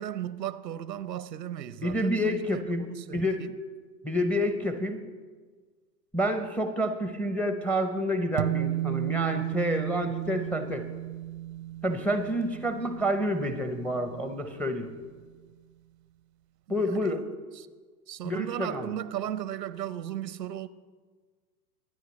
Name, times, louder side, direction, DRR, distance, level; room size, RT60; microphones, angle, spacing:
voice 1, 0.0-3.5 16.7-17.2 17.6-17.7 18.1-20.7, right 11 dB, 80° right, 0.8 m, -36 dB
voice 2, 1.8-2.9 3.1-3.5 4.0-5.0 6.1-10.9 11.8-14.9 16.7-17.2 18.2-18.9, equal, 5° left, 0.6 m, -28 dB
sound 1, 8.4-15.0, right 14 dB, 45° right, 0.5 m, -34 dB
24.0 x 9.2 x 3.1 m
hypercardioid pair, 105°, 49 cm